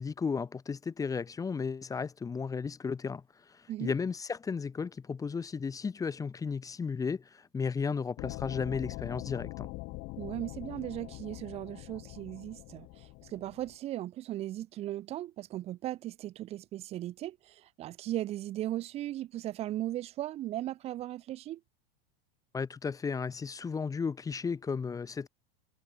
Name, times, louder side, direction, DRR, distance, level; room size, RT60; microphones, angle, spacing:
voice 1, 0.0-3.2 3.8-7.2 7.5-9.7 22.5-25.3, left 5 dB, 10° left, 1.0 m, -34 dB
sound 1, 8.2-13.7, left 24 dB, 40° left, 2.0 m, -43 dB
voice 2, 10.2-21.6, right 14 dB, 20° right, 0.4 m, -37 dB
supercardioid pair, 150°, 30 cm